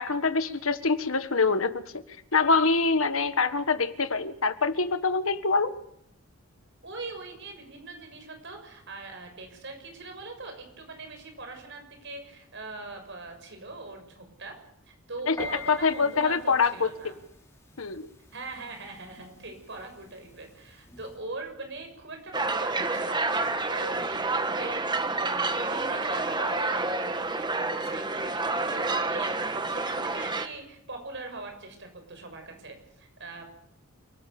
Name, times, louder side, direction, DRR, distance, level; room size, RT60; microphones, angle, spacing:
voice 1, 0.0-2.0 2.3-5.7 15.3-15.4 15.7-16.9 17.8-18.1, left 4 dB, 70° left, 11 dB, 1.6 m, -25 dB
voice 2, 6.8-14.6 14.9-17.2 18.3-28.4 28.7-33.4, right 3 dB, 55° right, 5 dB, 6.7 m, -42 dB
Piano, 15.4-21.2, left 4 dB, 15° left, 6.9 m, -46 dB
sound 1, 22.3-30.5, right 3 dB, 20° right, 1.4 m, -29 dB
29.0 x 18.5 x 7.1 m, 0.76 s
head